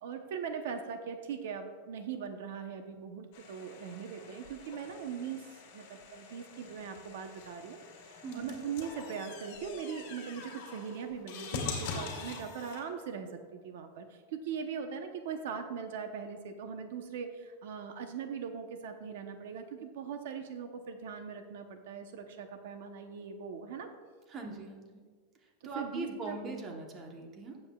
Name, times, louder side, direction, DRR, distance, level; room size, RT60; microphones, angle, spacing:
voice 1, 0.0-7.8 8.0-23.9 25.6-26.4, right 7 dB, 65° right, 6 dB, 0.8 m, -40 dB
sound 1, 3.3-12.8, left 5 dB, 50° left, 2.2 m, -44 dB
voice 2, 8.2-8.6 24.3-25.0 25.4-27.6, right 2 dB, 20° right, 2 dB, 1.0 m, -41 dB
16.5 x 7.7 x 2.3 m, 1.5 s
supercardioid pair, 175°, 0 cm